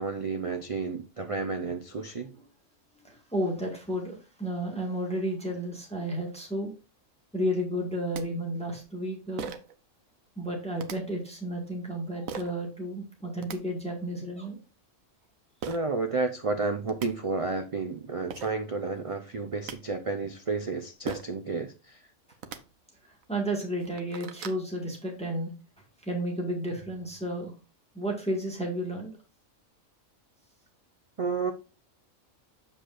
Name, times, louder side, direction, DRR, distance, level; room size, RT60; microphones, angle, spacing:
voice 1, 0.0-2.3 15.7-22.0 31.2-31.5, right 4 dB, 55° right, 0.3 m, -31 dB
voice 2, 3.0-6.7 7.3-9.5 10.3-14.6 15.8-15.9 23.0-25.5 26.0-27.5 27.9-29.2, right 1 dB, 5° left, 1.7 m, -32 dB
sound 1, 7.8-7.9 8.1-8.2 9.4-9.7 10.8-11.0 12.3-12.5 13.2-13.6 15.6-15.8 16.6-16.7 16.9-17.1 18.0-18.1 18.3-18.5 19.3-19.8 21.1-21.4 22.3-22.6 23.2-23.3 23.7-24.6, right 7 dB, 80° right, 1.2 m, -38 dB
7.7 x 6.6 x 2.5 m
omnidirectional pair, 1.4 m